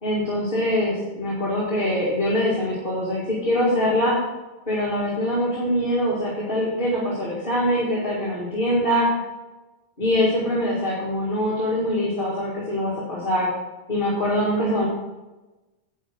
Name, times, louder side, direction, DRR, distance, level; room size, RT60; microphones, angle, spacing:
voice 1, 0.0-4.2 4.7-9.1 10.0-13.5 13.9-14.9, equal, 55° left, -7 dB, 2.4 m, -23 dB
10.5 x 8.1 x 3.7 m, 1.1 s
omnidirectional pair, 1.1 m